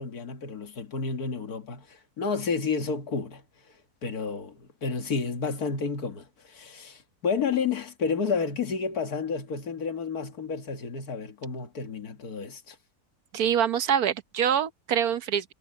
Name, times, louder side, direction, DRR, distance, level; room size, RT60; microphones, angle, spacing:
voice 1, 0.0-3.4 4.0-12.8, left 5 dB, 75° left, 2.2 m, -31 dB
voice 2, 13.3-15.5, right 8 dB, 70° right, 1.4 m, -25 dB
omnidirectional pair, 1.6 m